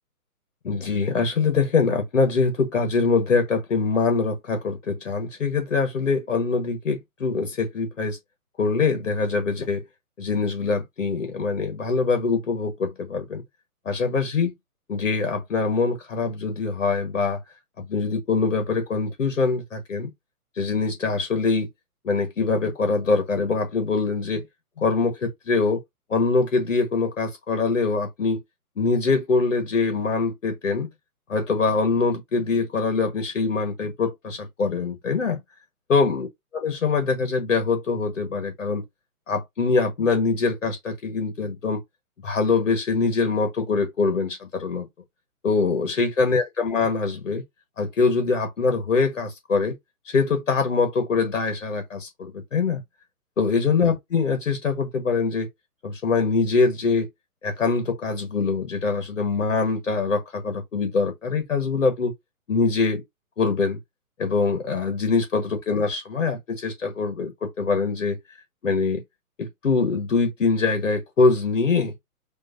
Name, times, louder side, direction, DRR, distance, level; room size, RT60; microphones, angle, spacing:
voice 1, 0.6-8.2 8.6-9.8 10.2-13.4 13.8-14.5 14.9-17.4 17.8-20.1 20.6-21.7 22.0-24.4 24.8-25.8 26.1-28.4 28.8-30.9 31.3-35.4 35.9-36.3 36.5-38.8 39.3-41.8 42.2-44.9 45.4-47.4 47.8-49.7 50.0-52.8 53.4-55.5 55.8-57.1 57.4-62.1 62.5-63.0 63.4-63.8 64.2-68.2 68.6-69.0 69.4-71.9, left 4 dB, 55° left, 1.4 m, -23 dB
6.2 x 3.1 x 2.6 m
hypercardioid pair, 180°, 45 cm